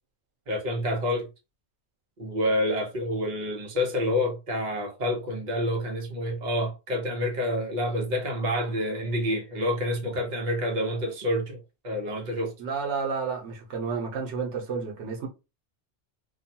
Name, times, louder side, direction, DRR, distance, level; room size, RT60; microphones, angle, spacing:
voice 1, 0.5-1.3 2.2-11.6 11.8-12.5, left 1 dB, 45° right, 0.9 m, -28 dB
voice 2, 12.6-15.3, right 5 dB, 85° right, 1.0 m, -31 dB
2.6 x 2.2 x 2.7 m
omnidirectional pair, 1.2 m